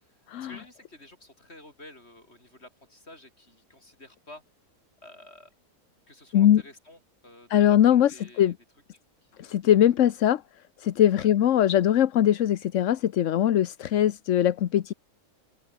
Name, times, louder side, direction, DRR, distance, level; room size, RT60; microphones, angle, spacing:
voice 1, 0.3-4.4 5.0-5.5 6.1-8.5 9.3-9.6 11.1-11.3 13.8-13.9, left 1 dB, 45° left, 7.0 m, -50 dB
voice 2, 7.5-8.5 9.4-10.4 10.8-14.9, left 11 dB, 60° left, 1.0 m, -21 dB
omnidirectional pair, 1.6 m